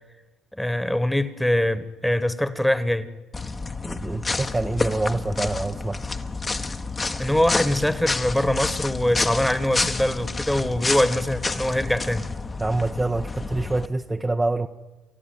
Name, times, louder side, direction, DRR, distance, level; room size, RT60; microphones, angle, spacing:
voice 1, 0.5-3.1 7.2-12.3, left 1 dB, 5° left, 1.6 m, -23 dB
sound 1, 3.3-13.9, left 3 dB, 25° left, 1.4 m, -29 dB
voice 2, 3.8-6.0 12.6-14.7, right 2 dB, 15° right, 0.9 m, -26 dB
28.5 x 14.0 x 9.3 m
hypercardioid pair, 55°, 0 cm